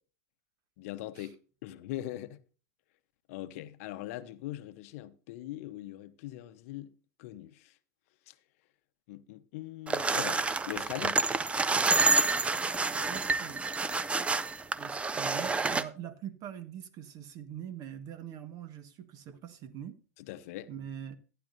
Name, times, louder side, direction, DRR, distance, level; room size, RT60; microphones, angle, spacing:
voice 1, 0.8-1.4 1.6-2.4 3.3-6.9 7.2-7.7 8.3-8.4 9.1-11.2 20.3-20.7, left 14 dB, 60° left, 0.8 m, -41 dB
sound 1, 9.9-15.8, right 3 dB, 15° right, 0.6 m, -28 dB
voice 2, 13.1-13.6 14.8-20.0 20.7-21.2, right 9 dB, 45° right, 1.5 m, -43 dB
14.5 x 10.0 x 2.6 m
hypercardioid pair, 105°, 9 cm